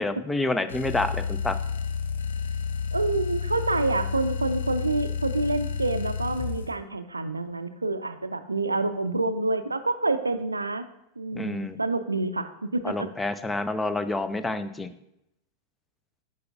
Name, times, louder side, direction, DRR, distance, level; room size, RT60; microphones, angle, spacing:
voice 1, 0.0-1.6 11.3-11.8 12.8-14.9, left 2 dB, 10° left, 11 dB, 0.5 m, -28 dB
sound 1, 0.7-6.7, left 6 dB, 70° left, 0.6 m, -30 dB
voice 2, 2.9-10.9 11.2-13.1, right 2 dB, 80° right, 11 dB, 0.4 m, -27 dB
9.4 x 6.8 x 2.4 m, 0.84 s
figure-of-eight pair, 90°, 0 cm